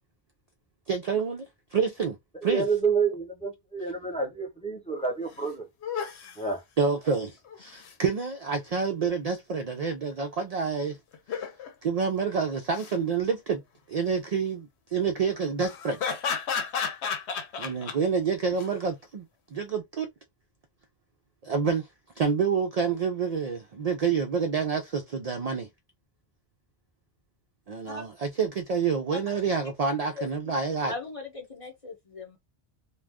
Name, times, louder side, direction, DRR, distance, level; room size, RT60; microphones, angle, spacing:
voice 1, 0.9-2.2 2.4-2.6 6.8-11.0 11.3-11.4 11.8-13.6 13.9-16.0 17.6-19.2 19.5-20.1 21.4-21.9 22.2-25.7 27.7-30.9, right 5 dB, 55° right, 0.4 m, -28 dB
voice 2, 2.3-5.7 6.3-6.6, right 5 dB, 5° left, 0.8 m, -29 dB
sound 1, 5.0-5.1 5.4-5.5 5.8-6.4 7.5-7.9 11.1-11.7 12.6-12.9 15.6-18.0 18.5-18.7, left 6 dB, 85° left, 0.9 m, -32 dB
voice 3, 30.9-32.4, left 2 dB, 35° left, 0.8 m, -38 dB
2.4 x 2.3 x 3.4 m
omnidirectional pair, 1.1 m